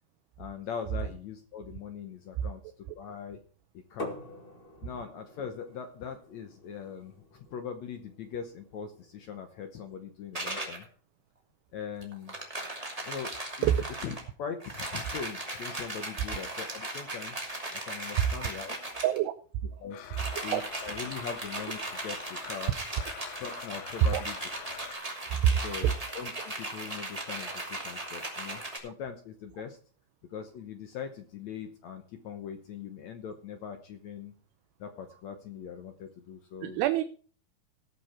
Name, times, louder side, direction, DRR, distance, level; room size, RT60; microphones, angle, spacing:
voice 1, 0.4-2.6 2.9-3.4 3.7-4.2 4.8-10.9 11.7-12.3 13.1-13.7 14.0-17.4 17.7-18.8 19.8-20.1 20.4-22.8 23.4-24.4 25.6-29.8 30.3-34.3 34.8-36.8, left 7 dB, 75° left, 7 dB, 1.7 m, -41 dB
sound 1, 4.0-9.6, left 1 dB, 30° left, 0.9 m, -47 dB
sound 2, 10.3-10.8 12.0-14.3 14.6-19.2 20.0-28.8, right 2 dB, 10° right, 1.8 m, -38 dB
voice 2, 19.0-19.3 20.5-20.6 24.1-24.2 25.4-25.6 36.6-37.0, right 11 dB, 90° right, 9 dB, 2.8 m, -25 dB
Domestic sounds home sounds, 19.9-24.9, left 11 dB, 90° left, 3.1 m, -46 dB
18.5 x 6.7 x 4.4 m, 0.41 s
omnidirectional pair, 4.6 m